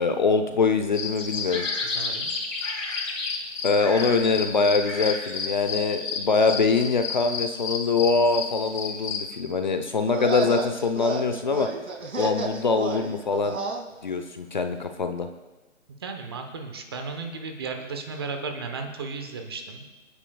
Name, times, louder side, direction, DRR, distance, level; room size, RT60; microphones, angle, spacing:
voice 1, 0.0-1.6 3.6-11.7 12.2-13.6 14.0-15.3, left 4 dB, 35° left, 7 dB, 0.7 m, -23 dB
sound 1, 0.9-9.3, left 4 dB, 75° left, 3.7 m, -31 dB
voice 2, 1.8-2.3 16.0-19.8, right 4 dB, 20° right, 5 dB, 0.9 m, -34 dB
sound 2, 10.0-13.8, right 3 dB, 85° right, 2.6 m, -31 dB
28.0 x 9.7 x 2.3 m, 1.2 s
hypercardioid pair, 160°, 39 cm